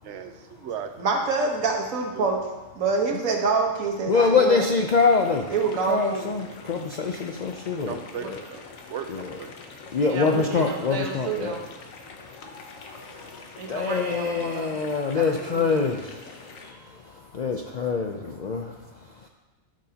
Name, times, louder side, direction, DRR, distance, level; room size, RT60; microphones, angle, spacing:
voice 1, 0.0-1.1 2.2-2.3 3.4-3.5 7.9-9.5, right 8 dB, 65° right, 8 dB, 0.9 m, -37 dB
voice 2, 1.0-2.4 2.7-4.6 5.5-6.3 8.2-8.3 10.0-11.6 13.6-14.7 15.1-15.7, right 4 dB, 90° right, 1 dB, 1.5 m, -27 dB
voice 3, 4.1-8.0 8.2-8.4 9.1-11.6 12.4-19.3, left 4 dB, 60° left, 2 dB, 0.4 m, -26 dB
sound 1, 5.0-16.7, left 4 dB, 85° left, 1.3 m, -45 dB
12.5 x 6.3 x 2.8 m, 1.2 s
omnidirectional pair, 1.4 m